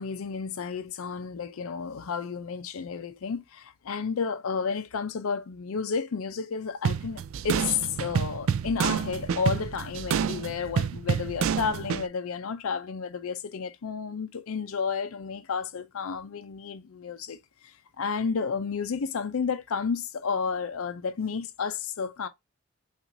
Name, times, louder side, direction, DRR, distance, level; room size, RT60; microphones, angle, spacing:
voice 1, 0.0-22.3, left 5 dB, 80° left, 0.5 m, -31 dB
sound 1, 6.8-12.1, right 7 dB, 70° right, 0.3 m, -28 dB
5.8 x 2.5 x 2.6 m
head